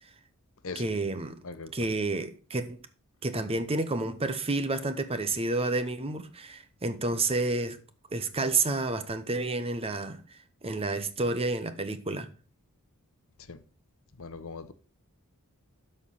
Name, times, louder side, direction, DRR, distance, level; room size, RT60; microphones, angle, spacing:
voice 1, 0.7-1.4 1.7-2.8 3.2-7.8 8.1-10.2 10.6-12.3, right 2 dB, 25° right, 0.9 m, -30 dB
voice 2, 1.4-1.9 13.5-13.6 14.2-14.7, left 4 dB, 65° left, 0.9 m, -40 dB
12.5 x 4.5 x 5.5 m
head